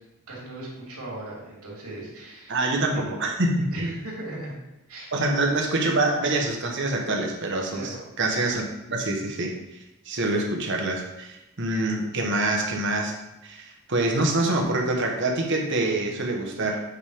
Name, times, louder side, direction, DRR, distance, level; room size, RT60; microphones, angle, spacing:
voice 1, 0.3-2.6 2.9-3.2 3.7-4.6 4.9-5.1 7.7-8.0, right 1 dB, 90° right, -4 dB, 2.8 m, -38 dB
voice 2, 2.5-3.9 5.1-9.5 10.1-13.1 13.4-16.8, right 2 dB, 55° right, 1 dB, 1.1 m, -25 dB
8.2 x 3.6 x 4.9 m, 0.95 s
head